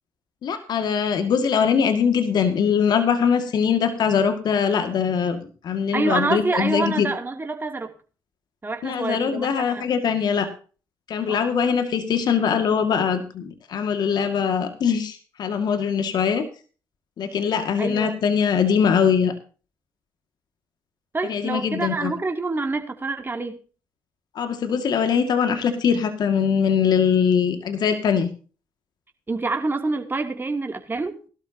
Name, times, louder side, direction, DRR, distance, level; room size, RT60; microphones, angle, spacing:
voice 1, 0.4-5.4 5.6-7.1 8.8-10.5 11.1-16.4 17.2-19.3 21.3-22.1 24.4-28.3, left 7 dB, 65° left, 8 dB, 2.1 m, -22 dB
voice 2, 5.9-7.9 8.6-9.9 11.3-11.4 17.8-18.2 21.1-23.6 29.3-31.2, right 3 dB, 25° right, 4 dB, 2.8 m, -27 dB
17.0 x 12.5 x 2.8 m, 0.36 s
supercardioid pair, 60°, 8 cm